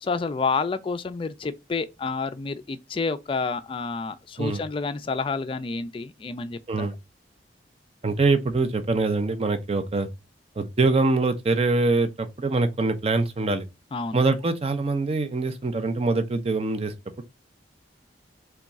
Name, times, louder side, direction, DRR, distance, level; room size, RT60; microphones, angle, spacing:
voice 1, 0.0-6.9 13.9-14.2, left 4 dB, 30° left, 0.3 m, -29 dB
voice 2, 8.0-10.1 10.6-13.7 14.1-17.2, right 3 dB, 35° right, 0.5 m, -24 dB
3.5 x 2.3 x 4.0 m
head